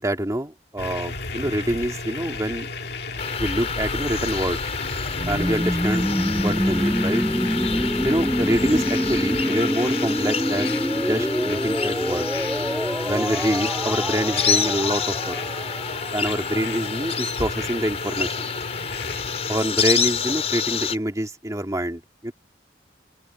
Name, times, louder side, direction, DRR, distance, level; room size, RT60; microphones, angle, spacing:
voice 1, 0.0-2.7 3.4-4.6 5.3-6.1 6.4-7.2 8.0-12.3 13.0-15.4 16.1-18.5 19.5-22.3, right 1 dB, 20° right, 2.5 m, -26 dB
sound 1, 0.8-19.6, left 3 dB, 65° left, 2.1 m, -33 dB
sound 2, 3.2-20.9, left 6 dB, 35° left, 5.0 m, -28 dB
sound 3, 5.1-16.9, equal, 5° right, 8.0 m, -26 dB
head